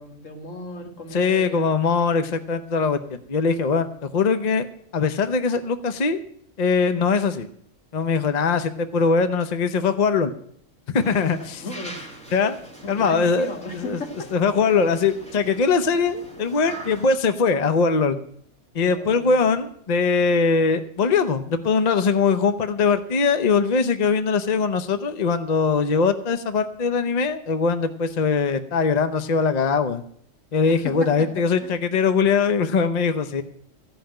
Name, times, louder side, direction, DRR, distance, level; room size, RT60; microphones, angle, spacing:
voice 1, 0.0-1.9 11.3-12.1 12.8-14.3 18.9-19.5 30.7-31.8, left 2 dB, 80° left, 3 dB, 2.2 m, -36 dB
voice 2, 1.1-4.7 4.9-6.2 6.6-7.5 7.9-10.3 10.9-11.6 12.3-12.6 12.9-14.0 14.3-18.2 18.7-30.0 30.5-33.4, left 5 dB, 40° left, 10 dB, 0.8 m, -21 dB
sound 1, 10.9-17.1, right 2 dB, 5° left, 1.9 m, -42 dB
15.0 x 5.6 x 8.9 m, 0.65 s
omnidirectional pair, 1.3 m